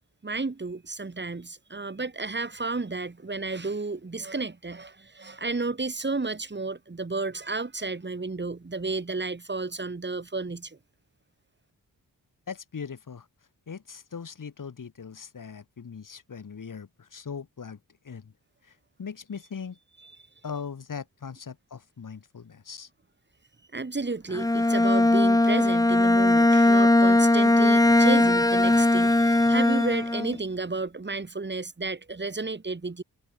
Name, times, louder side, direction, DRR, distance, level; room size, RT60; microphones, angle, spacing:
voice 1, 0.2-10.8 20.0-20.1 23.7-33.0, right 3 dB, 30° right, 5.5 m, -32 dB
voice 2, 12.5-13.3 13.7-17.8 18.0-18.3 19.0-19.8 20.4-22.9, left 6 dB, 55° left, 6.3 m, -39 dB
Bowed string instrument, 24.3-30.4, left 2 dB, 10° left, 0.9 m, -20 dB
wide cardioid pair, 115°, 37 cm